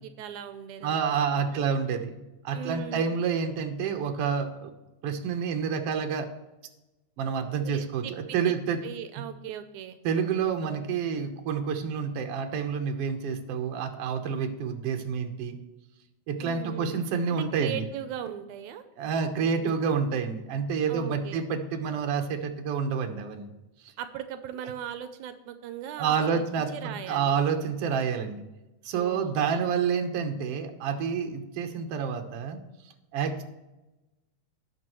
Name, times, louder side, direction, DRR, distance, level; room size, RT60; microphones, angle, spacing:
voice 1, 0.0-1.2 1.5-1.6 2.5-3.1 7.6-8.5 8.8-10.0 16.4-17.0 17.3-18.8 19.6-19.7 20.9-21.5 24.0-27.3 28.9-29.6, right 9 dB, 85° right, 9 dB, 2.1 m, -39 dB
voice 2, 0.8-2.2 2.4-4.7 5.0-6.3 7.2-8.8 9.2-9.3 10.0-15.6 16.3-17.8 19.0-23.5 26.0-28.4 28.8-32.6 33.1-33.4, right 6 dB, 60° right, 5 dB, 1.8 m, -28 dB
18.5 x 6.2 x 3.1 m, 1.0 s
omnidirectional pair, 3.4 m